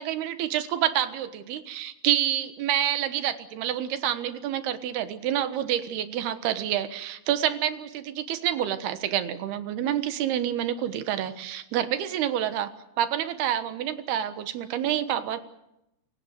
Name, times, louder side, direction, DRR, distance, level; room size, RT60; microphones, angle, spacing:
voice 1, 0.0-12.7 13.0-15.4, right 11 dB, 80° right, 11 dB, 3.3 m, -28 dB
27.5 x 17.0 x 8.2 m, 0.87 s
omnidirectional pair, 4.5 m